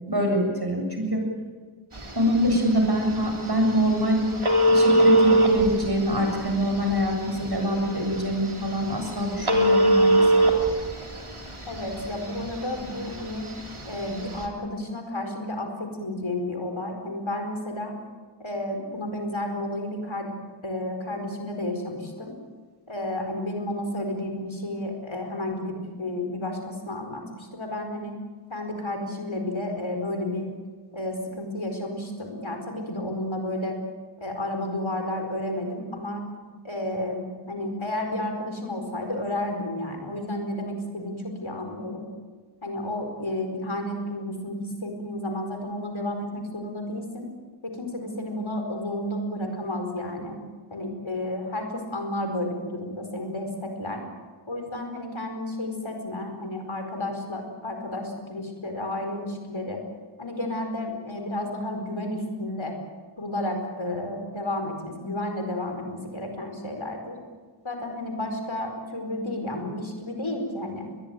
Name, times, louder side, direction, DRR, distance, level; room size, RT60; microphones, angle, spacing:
voice 1, 0.1-1.2 2.1-4.3 4.7-10.4, equal, 50° right, 2 dB, 7.6 m, -24 dB
Telephone, 1.9-14.5, right 1 dB, 75° right, 3.6 m, -24 dB
voice 2, 11.7-13.5 13.8-18.0 18.4-20.3 20.6-22.4 22.9-28.1 28.5-30.5 30.9-33.8 34.2-36.2 36.6-42.1 42.6-47.3 47.6-50.4 50.7-54.0 54.5-59.8 60.2-62.8 63.2-67.2 67.6-70.9, left 1 dB, 70° left, 4 dB, 4.7 m, -31 dB
22.0 x 21.5 x 9.3 m, 1.5 s
wide cardioid pair, 40°, 49 cm